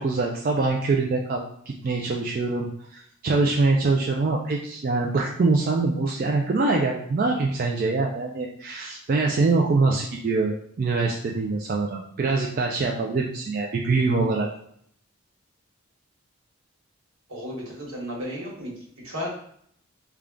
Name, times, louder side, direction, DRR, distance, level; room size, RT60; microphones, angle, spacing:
voice 1, 0.0-14.5, right 3 dB, 40° right, 0 dB, 0.3 m, -24 dB
voice 2, 17.3-18.7 19.0-19.3, equal, 80° right, -3 dB, 1.3 m, -33 dB
3.4 x 2.3 x 3.7 m, 0.65 s
head